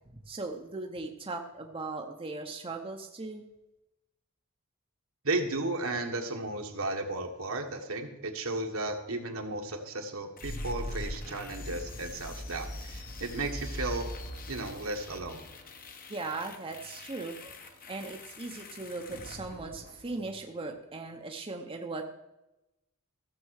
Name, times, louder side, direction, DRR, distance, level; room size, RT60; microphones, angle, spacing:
voice 1, 0.1-3.5 16.1-22.0, right 3 dB, 25° right, 2 dB, 0.9 m, -38 dB
voice 2, 5.2-14.1 14.5-15.4, right 2 dB, 70° right, 3 dB, 1.6 m, -34 dB
sound 1, 10.4-20.3, left 1 dB, 40° left, 1.1 m, -42 dB
15.0 x 6.9 x 6.5 m, 0.96 s
head